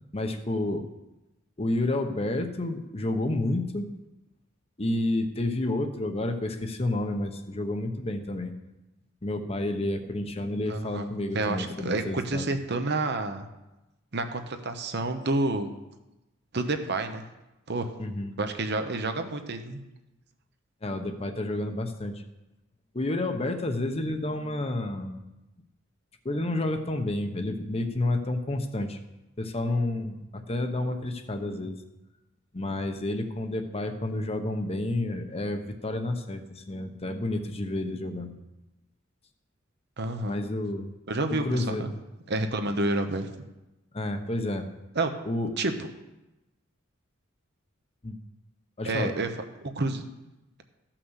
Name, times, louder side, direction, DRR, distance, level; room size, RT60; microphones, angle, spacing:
voice 1, 0.1-0.9 1.6-3.9 4.8-8.5 9.2-12.5 18.0-18.4 20.8-22.2 22.9-25.2 26.2-29.0 29.4-31.8 32.5-38.3 40.3-40.9 41.4-41.9 43.9-44.7 45.3-45.5 48.0-48.2 48.8-49.1, left 2 dB, 30° left, 6 dB, 1.0 m, -30 dB
voice 2, 10.7-11.1 11.3-13.5 14.1-15.7 16.5-17.2 17.7-17.9 18.4-19.8 40.0-40.4 41.1-41.9 42.3-43.3 44.9-45.1 45.6-45.9 48.8-49.3 49.6-50.0, right 2 dB, 55° right, 7 dB, 1.0 m, -29 dB
14.0 x 5.9 x 6.5 m, 0.99 s
head